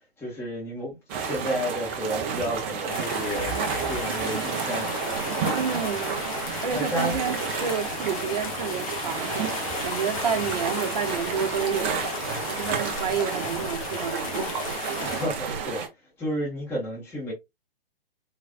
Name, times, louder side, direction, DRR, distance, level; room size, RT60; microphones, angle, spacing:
voice 1, 0.2-5.0 6.7-7.1 15.0-15.8 16.2-17.3, equal, 10° left, 1.6 m, -31 dB
sound 1, 1.1-15.9, right 6 dB, 20° right, 0.6 m, -31 dB
sound 2, 2.9-15.3, left 5 dB, 35° left, 1.1 m, -34 dB
voice 2, 5.5-6.4 6.6-12.0 12.5-14.5, right 7 dB, 40° right, 1.0 m, -30 dB
4.0 x 3.2 x 2.4 m
figure-of-eight pair, 125°, 30 cm